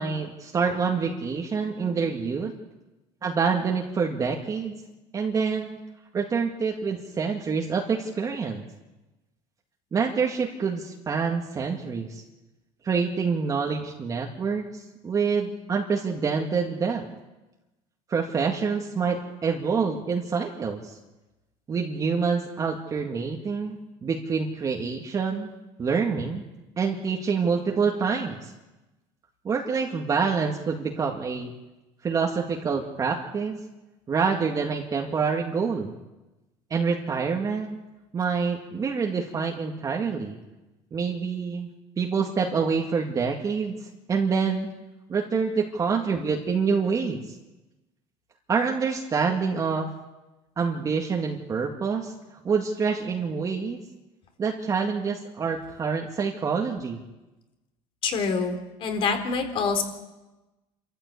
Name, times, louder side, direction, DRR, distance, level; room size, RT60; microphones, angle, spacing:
voice 1, 0.0-2.5 3.2-4.8 5.1-5.8 6.1-8.6 9.9-12.2 12.8-17.0 18.1-21.0 21.7-25.5 25.8-26.4 26.8-28.5 29.4-31.5 32.0-33.6 34.1-35.9 36.7-37.8 38.1-40.4 40.9-41.7 42.0-44.7 45.1-47.2 48.5-49.9 50.6-52.1 52.4-53.8 54.4-57.0, right 5 dB, 30° right, 1 dB, 2.1 m, -26 dB
voice 2, 58.0-59.8, left 5 dB, 50° left, 5 dB, 4.1 m, -26 dB
27.5 x 14.5 x 8.5 m, 1.1 s
cardioid pair, 125°, 12 cm